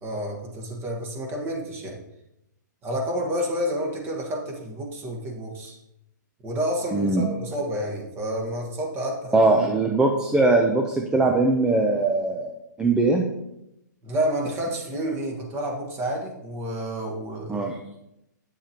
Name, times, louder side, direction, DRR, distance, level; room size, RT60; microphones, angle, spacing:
voice 1, 0.0-2.0 2.8-5.8 6.4-9.4 14.0-17.6, equal, 25° right, 0 dB, 1.6 m, -29 dB
voice 2, 6.9-7.2 9.3-12.5 12.8-13.2 17.5-17.8, right 2 dB, 10° right, 2 dB, 0.6 m, -21 dB
9.1 x 7.2 x 2.9 m, 0.86 s
hypercardioid pair, 135°, 10 cm